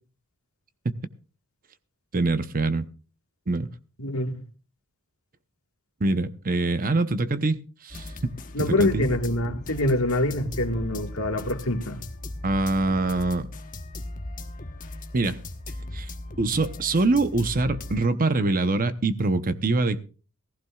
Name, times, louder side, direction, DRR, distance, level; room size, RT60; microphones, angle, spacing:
voice 1, 2.1-2.8 3.5-3.7 6.0-8.1 8.6-9.0 12.4-13.5 15.1-15.4 15.9-16.1 16.4-20.0, right 2 dB, 40° right, 0.8 m, -24 dB
voice 2, 4.0-4.4 8.5-12.0, left 1 dB, 70° left, 1.7 m, -25 dB
sound 1, 7.9-18.1, left 2 dB, 40° left, 1.1 m, -38 dB
19.5 x 15.0 x 2.4 m
head